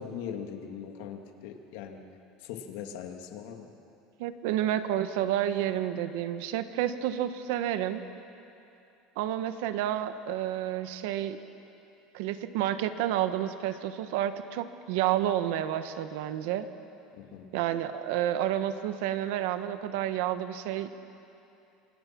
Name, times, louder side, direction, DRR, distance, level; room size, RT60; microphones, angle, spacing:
voice 1, 0.0-2.1 2.4-3.7 17.2-17.5, left 7 dB, 75° left, 3 dB, 2.5 m, -40 dB
voice 2, 4.2-8.0 9.2-11.4 12.1-16.7 17.5-20.9, right 11 dB, 70° right, 10 dB, 1.3 m, -30 dB
27.0 x 26.5 x 6.1 m, 2.7 s
cardioid pair, 165°, 0 cm